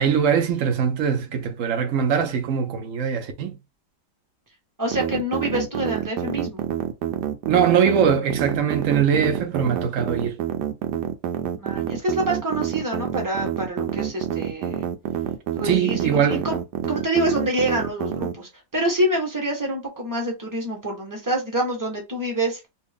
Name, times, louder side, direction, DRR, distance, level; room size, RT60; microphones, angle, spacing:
voice 1, 0.0-3.6 7.5-10.4 15.6-16.5, right 7 dB, 65° right, 0.8 m, -21 dB
voice 2, 4.8-6.6 11.6-14.9 15.5-16.6 16.8-22.7, right 1 dB, 15° right, 0.8 m, -26 dB
sound 1, 4.9-18.3, right 10 dB, 85° right, 1.2 m, -27 dB
2.8 x 2.7 x 3.4 m
omnidirectional pair, 1.8 m